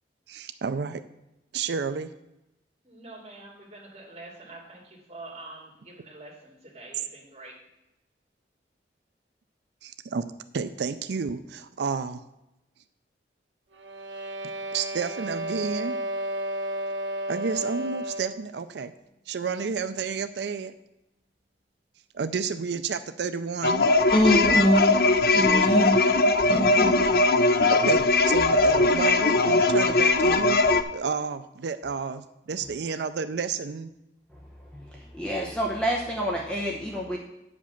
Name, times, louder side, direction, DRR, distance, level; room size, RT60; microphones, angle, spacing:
voice 1, 0.3-1.0 1.5-2.1 9.8-10.3 10.5-12.2 14.7-16.0 17.3-18.9 19.3-20.7 22.1-23.9 27.7-33.9, right 5 dB, 70° right, 11 dB, 0.4 m, -31 dB
voice 2, 2.8-7.5, right 2 dB, 35° right, -3 dB, 2.7 m, -45 dB
sound 1, 13.7-18.5, right 1 dB, 90° right, 0.9 m, -32 dB
sound 2, 23.6-30.8, left 3 dB, 55° left, 0.5 m, -20 dB
voice 3, 24.1-24.9 25.3-26.0 26.2-27.0, equal, 30° left, 0 dB, 1.5 m, -23 dB
voice 4, 34.7-37.2, equal, 5° left, -2 dB, 0.8 m, -29 dB
9.0 x 5.2 x 7.0 m, 0.91 s
head